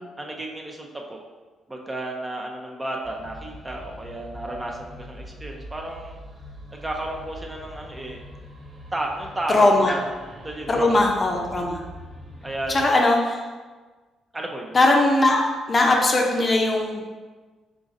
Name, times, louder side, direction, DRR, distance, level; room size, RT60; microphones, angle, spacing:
voice 1, 0.2-1.2 1.7-6.2 6.8-8.2 8.9-9.6 9.9-10.0 10.4-11.0 12.4-13.0 14.3-14.7, right 1 dB, 20° right, 0 dB, 0.5 m, -32 dB
sound 1, 3.0-12.9, equal, 45° right, 0.9 m, -43 dB
voice 2, 9.5-10.0 10.7-11.8 12.7-13.4 14.7-17.1, left 2 dB, 35° left, 1 dB, 0.6 m, -20 dB
3.9 x 3.8 x 2.5 m, 1.3 s
cardioid pair, 90°, 0 cm